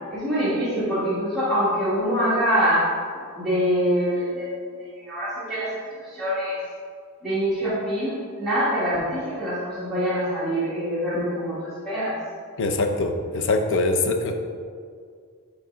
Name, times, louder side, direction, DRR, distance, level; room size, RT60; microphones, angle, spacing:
voice 1, 0.1-2.9 3.4-4.5 4.8-5.8 6.1-6.6 7.2-12.1, equal, ahead, -13 dB, 1.3 m, -24 dB
voice 2, 12.6-14.3, left 2 dB, 55° left, 5 dB, 0.6 m, -23 dB
7.0 x 3.3 x 5.0 m, 2.1 s
head